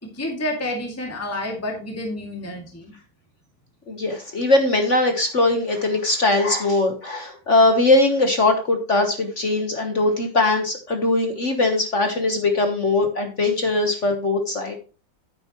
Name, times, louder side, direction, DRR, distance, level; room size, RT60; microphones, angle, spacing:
voice 1, 0.1-2.9, left 1 dB, 5° left, 1 dB, 2.1 m, -29 dB
voice 2, 3.9-14.8, left 2 dB, 40° left, 5 dB, 1.2 m, -20 dB
9.5 x 9.0 x 3.0 m, 0.34 s
omnidirectional pair, 2.3 m